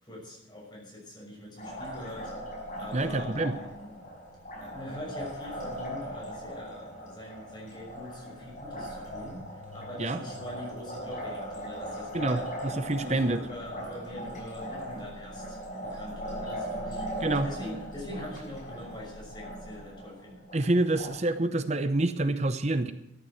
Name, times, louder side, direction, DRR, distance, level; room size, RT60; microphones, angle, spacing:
voice 1, 0.0-2.3 2.7-4.0 4.6-9.4 9.7-12.5 13.0-15.6 15.8-20.4, left 1 dB, 25° left, -3 dB, 6.2 m, -43 dB
Liquid, 1.6-21.1, equal, 40° left, 5.7 m, -39 dB
voice 2, 2.9-3.6 10.0-10.2 12.1-13.4 17.2-17.5 20.5-22.9, right 2 dB, 35° right, 10 dB, 0.7 m, -27 dB
sound 1, 3.8-15.1 21.3-21.4 21.6-21.8, left 2 dB, 75° left, 6.3 m, -58 dB
13.5 x 9.4 x 7.9 m, 0.86 s
head